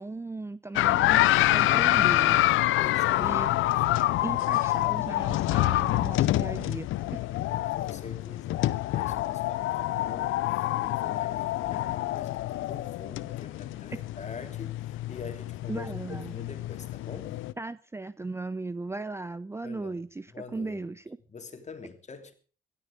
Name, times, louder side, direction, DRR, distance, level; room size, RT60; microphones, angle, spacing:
voice 1, 0.0-2.5 3.2-3.5 4.2-7.3 15.7-16.3 17.6-21.2, right 3 dB, 15° right, 0.6 m, -37 dB
sound 1, 0.8-17.5, left 15 dB, 90° left, 0.8 m, -27 dB
voice 2, 2.8-3.4 7.7-15.9 16.2-17.4 19.6-19.9 20.3-20.8 21.3-22.3, left 4 dB, 35° left, 3.1 m, -45 dB
17.0 x 13.0 x 5.2 m
cardioid pair, 90°, 20 cm